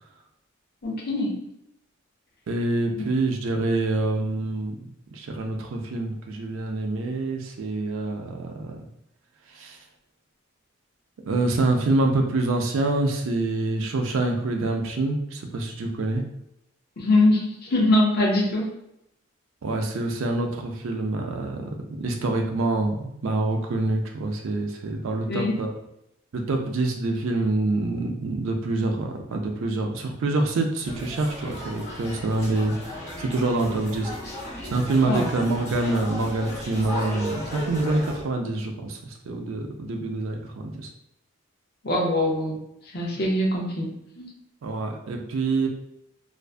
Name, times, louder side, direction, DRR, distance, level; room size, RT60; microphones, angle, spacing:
voice 1, 0.8-1.4 17.0-18.7 25.3-25.6 35.1-35.3 41.8-42.6 42.9-44.3, left 1 dB, 50° left, -1 dB, 0.6 m, -23 dB
voice 2, 2.5-4.7 5.1-8.8 9.5-9.8 11.3-16.2 19.6-25.7 26.3-34.1 34.6-40.9 44.6-45.7, right 2 dB, 70° right, 3 dB, 0.4 m, -26 dB
sound 1, 30.8-38.2, equal, 15° left, 0.8 m, -35 dB
2.5 x 2.2 x 2.4 m, 0.82 s
head